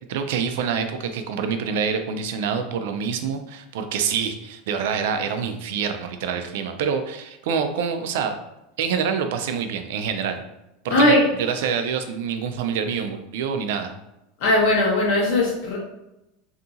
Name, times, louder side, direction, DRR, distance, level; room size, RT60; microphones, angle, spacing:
voice 1, 0.1-8.3 8.8-10.4 10.8-13.9, right 6 dB, 75° right, 7 dB, 0.3 m, -26 dB
voice 2, 10.9-11.2 14.4-15.8, left 1 dB, 60° left, -4 dB, 1.0 m, -18 dB
2.7 x 2.6 x 2.4 m, 0.90 s
supercardioid pair, 160°, 0 cm